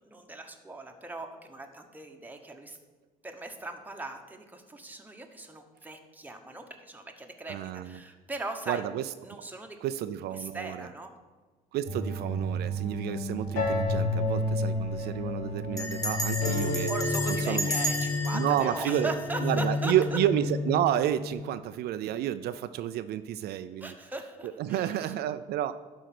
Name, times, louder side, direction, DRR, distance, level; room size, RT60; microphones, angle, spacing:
voice 1, 0.0-2.8 3.2-7.6 7.8-8.8 9.2-9.8 10.4-11.1 16.9-20.2 23.8-24.9, right 2 dB, 10° right, 4 dB, 1.1 m, -39 dB
voice 2, 7.5-8.0 8.7-9.5 9.8-10.9 11.7-16.9 17.3-17.7 18.3-19.1 19.4-23.9 24.4-25.7, right 11 dB, 70° right, 11 dB, 0.4 m, -30 dB
sound 1, 11.8-21.3, left 2 dB, 65° left, 2.9 m, -31 dB
Bell, 13.6-14.0 14.3-14.4 14.6-15.0 15.8-19.9, left 1 dB, 20° left, 1.7 m, -34 dB
11.5 x 4.6 x 6.0 m, 1.3 s
cardioid pair, 110°, 17 cm